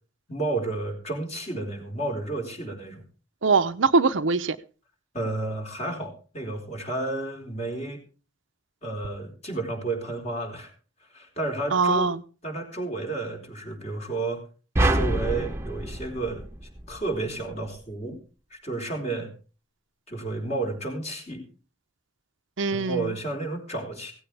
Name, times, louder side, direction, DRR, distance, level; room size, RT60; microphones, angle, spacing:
voice 1, 0.3-3.0 5.1-8.0 8.8-10.7 11.1-12.1 12.4-14.4 14.8-16.4 16.9-18.2 18.5-19.3 20.1-21.4 22.7-24.1, right 2 dB, 35° left, 4.4 m, -31 dB
voice 2, 3.4-4.6 11.7-12.2 22.6-23.1, right 4 dB, 75° right, 0.8 m, -22 dB
sound 1, 14.8-17.2, right 1 dB, 15° right, 1.1 m, -26 dB
17.0 x 15.5 x 3.4 m
head